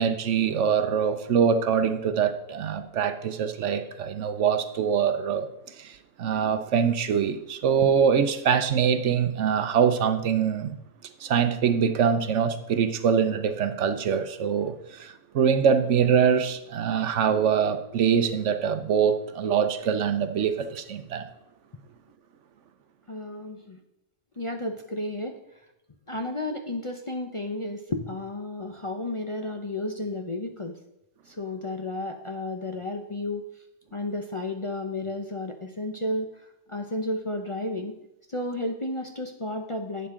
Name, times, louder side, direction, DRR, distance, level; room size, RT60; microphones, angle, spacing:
voice 1, 0.0-5.5 5.8-10.8 11.2-21.3, right 7 dB, 70° right, 10 dB, 1.0 m, -24 dB
voice 2, 23.1-23.8 24.4-25.4 26.1-30.8 31.3-33.5 33.9-36.3 36.7-37.9 38.3-40.1, left 2 dB, 30° left, 3 dB, 0.6 m, -32 dB
11.5 x 8.2 x 3.7 m, 0.84 s
omnidirectional pair, 1.3 m